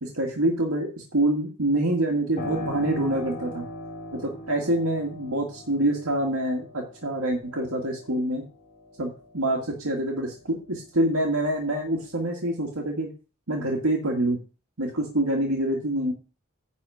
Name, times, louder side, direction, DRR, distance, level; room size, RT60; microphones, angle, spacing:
voice 1, 0.0-3.7 4.2-8.4 9.0-13.1 13.5-14.4 14.8-16.1, right 1 dB, 90° right, -1 dB, 2.0 m, -26 dB
Piano, 2.4-10.8 11.2-12.3, left 1 dB, 35° left, 2.8 m, -40 dB
10.5 x 4.3 x 7.8 m, 0.35 s
head